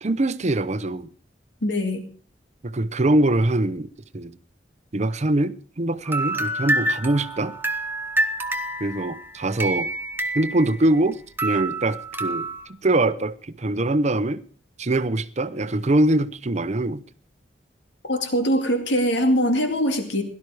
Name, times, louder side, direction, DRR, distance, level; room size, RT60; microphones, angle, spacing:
voice 1, 0.0-1.1 2.6-4.4 4.9-7.5 8.8-9.9 10.3-12.5 12.8-14.4 14.8-17.0, right 1 dB, 40° right, 0.7 m, -23 dB
voice 2, 1.6-2.0 18.1-20.2, equal, 85° left, 2.2 m, -22 dB
sound 1, 6.0-11.1 11.4-12.7, right 1 dB, 10° right, 1.0 m, -27 dB
17.0 x 12.0 x 4.8 m
head